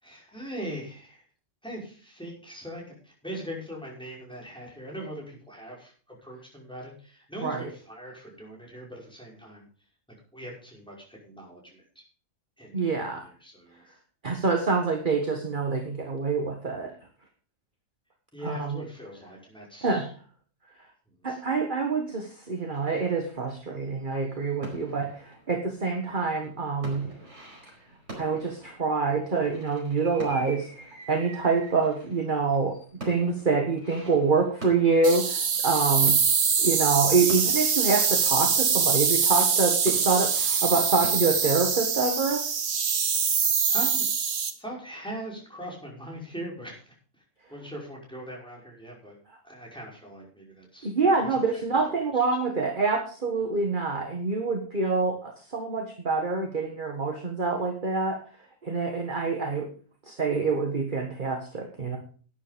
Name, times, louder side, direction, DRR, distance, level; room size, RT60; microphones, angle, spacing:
voice 1, 0.0-1.2 1.6-9.7 10.3-12.1 12.6-13.8 18.3-20.1 21.2-21.4 43.2-44.1 44.6-46.9 47.5-49.2 49.4-50.9 51.2-52.2, right 1 dB, 5° left, -3 dB, 5.5 m, -41 dB
voice 2, 12.7-13.2 14.2-16.9 18.4-18.8 19.8-20.1 21.2-27.0 28.2-30.7 31.1-32.7 33.0-36.1 36.6-42.4 50.8-58.2 58.6-59.7 60.1-62.0, right 4 dB, 40° right, 3 dB, 1.7 m, -26 dB
sound 1, 22.7-38.9 39.2-42.4, right 2 dB, 60° right, 5.3 m, -46 dB
sound 2, 35.0-44.5, right 6 dB, 90° right, 1.7 m, -24 dB
12.5 x 10.0 x 5.1 m, 0.41 s
omnidirectional pair, 1.4 m